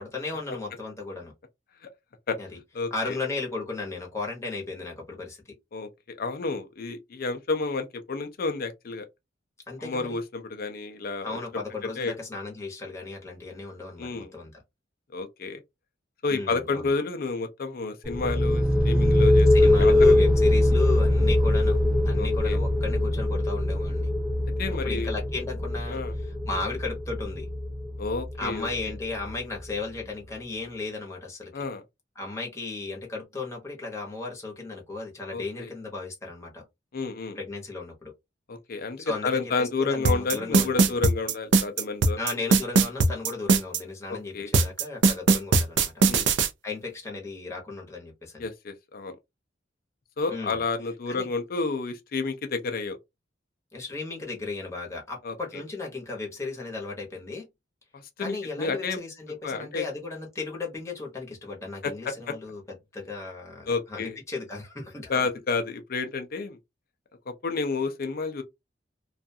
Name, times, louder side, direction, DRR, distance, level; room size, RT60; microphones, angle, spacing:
voice 1, 0.0-1.3 2.4-2.5 2.9-5.4 9.7-10.2 11.2-14.5 16.3-16.9 19.5-24.1 24.7-26.0 26.5-27.5 28.4-31.5 32.2-36.6 37.3-38.1 39.0-41.0 42.2-45.9 46.6-48.5 50.3-50.6 51.1-51.3 53.7-57.4 58.2-62.6 62.9-65.1, left 3 dB, 15° left, 0.9 m, -35 dB
voice 2, 2.7-3.2 5.7-9.1 9.8-11.4 12.0-12.1 14.0-14.3 15.1-15.6 16.2-20.2 22.2-22.6 24.6-25.1 25.9-26.1 28.0-28.7 31.5-31.8 35.3-35.7 36.9-37.4 38.5-42.2 44.1-44.5 46.0-46.3 48.4-49.2 50.2-53.0 55.2-55.3 57.9-59.0 59.4-59.9 61.8-62.3 63.7-64.2 65.1-66.6 67.3-68.4, left 4 dB, 50° left, 0.5 m, -30 dB
sound 1, 18.0-29.6, left 1 dB, 5° right, 0.4 m, -22 dB
sound 2, 40.0-43.8 44.5-46.5, right 3 dB, 65° right, 0.4 m, -20 dB
2.4 x 2.3 x 2.6 m
head